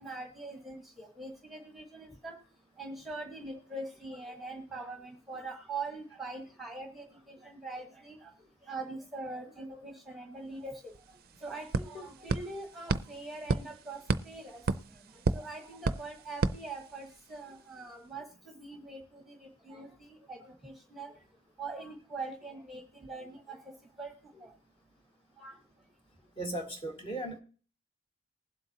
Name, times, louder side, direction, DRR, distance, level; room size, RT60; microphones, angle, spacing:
voice 1, 0.0-2.4 2.8-8.3 8.6-10.9 11.4-14.6 15.0-21.2 21.6-23.6 24.0-24.5 25.4-25.6, right 3 dB, ahead, 2 dB, 1.3 m, -43 dB
sound 1, 10.6-10.7 10.9-17.4, right 3 dB, 50° right, 0.5 m, -34 dB
voice 2, 26.4-27.4, right 1 dB, 25° left, 2 dB, 1.9 m, -36 dB
20.0 x 7.8 x 2.8 m, 0.39 s
head